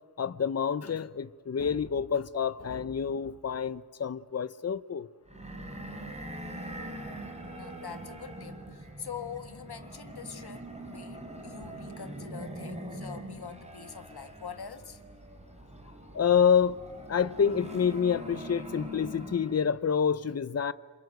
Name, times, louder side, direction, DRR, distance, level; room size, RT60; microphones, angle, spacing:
voice 1, 0.2-5.1 16.1-16.8 17.1-20.7, left 7 dB, 40° left, 0.7 m, -27 dB
sound 1, 5.3-19.8, right 1 dB, 15° right, 4.2 m, -43 dB
voice 2, 7.4-15.0, left 7 dB, 75° left, 1.8 m, -44 dB
27.5 x 27.0 x 8.0 m
wide cardioid pair, 110°, 38 cm